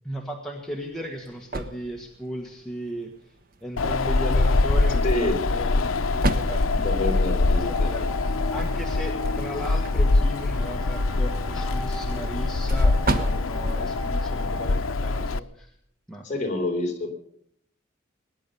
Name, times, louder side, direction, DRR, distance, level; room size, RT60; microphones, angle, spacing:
voice 1, 0.0-3.1 3.6-5.8 6.1-15.7 16.1-16.3, equal, 5° left, -1 dB, 1.5 m, -36 dB
sound 1, 0.6-15.1, right 1 dB, 45° right, 1.1 m, -36 dB
Wind, 3.8-15.4, left 3 dB, 80° left, 0.6 m, -24 dB
voice 2, 5.0-5.4 6.8-7.9 16.2-17.1, left 2 dB, 35° left, 0 dB, 3.9 m, -27 dB
sound 2, 7.6-14.8, equal, 85° right, 3.1 m, -40 dB
20.0 x 10.0 x 6.9 m, 0.68 s
head